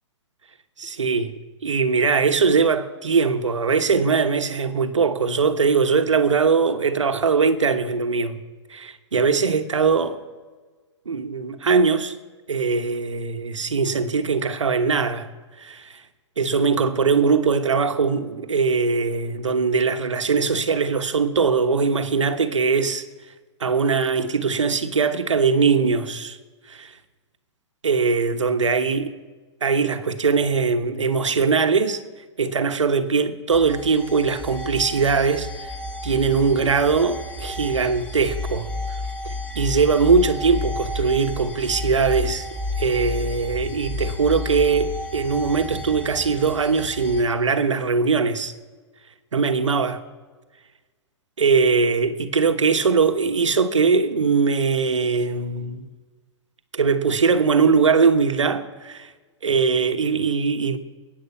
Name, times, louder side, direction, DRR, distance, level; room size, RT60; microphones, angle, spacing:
voice 1, 0.8-8.4 8.7-10.2 11.1-12.1 12.5-15.3 15.6-15.9 16.4-23.1 23.6-26.4 26.7-26.9 27.8-29.1 29.6-32.0 32.4-35.7 36.0-38.7 39.2-42.5 42.8-48.5 49.3-50.0 51.4-55.9 56.7-59.1 59.4-60.8, right 5 dB, 85° right, 1.2 m, -21 dB
sound 1, 33.5-47.2, left 2 dB, 10° left, 3.9 m, -31 dB
21.0 x 9.5 x 5.6 m
hypercardioid pair, 115°, 15 cm